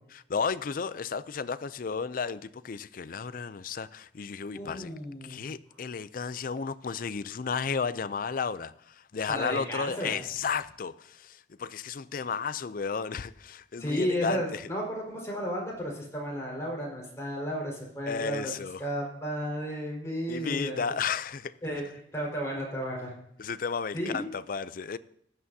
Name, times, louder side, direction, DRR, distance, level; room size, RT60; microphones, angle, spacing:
voice 1, 0.1-4.9 5.2-14.7 18.1-18.8 20.3-21.5 23.4-25.0, left 5 dB, 50° left, 0.5 m, -33 dB
voice 2, 4.5-5.5 9.3-10.2 13.8-18.5 18.8-20.8 21.6-21.8 22.1-23.1 23.9-24.3, equal, 15° left, 4.8 m, -33 dB
15.5 x 11.0 x 2.8 m
head